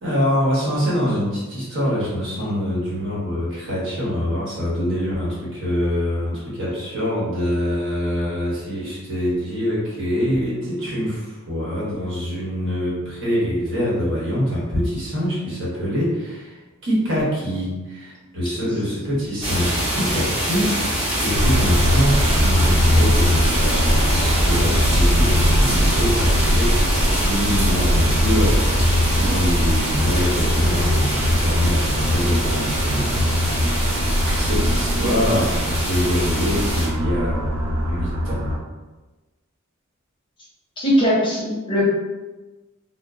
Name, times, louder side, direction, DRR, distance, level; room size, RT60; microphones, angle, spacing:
voice 1, 0.0-20.7 21.2-26.9 27.2-28.6 29.1-37.4 37.9-38.4, equal, 60° right, -7 dB, 1.0 m, -25 dB
sound 1, 19.4-36.9, equal, 25° right, 0.9 m, -25 dB
sound 2, 21.3-38.6, equal, 80° right, 0.5 m, -21 dB
voice 2, 40.8-41.8, equal, 25° left, -6 dB, 0.6 m, -20 dB
2.0 x 2.0 x 3.5 m, 1.2 s
head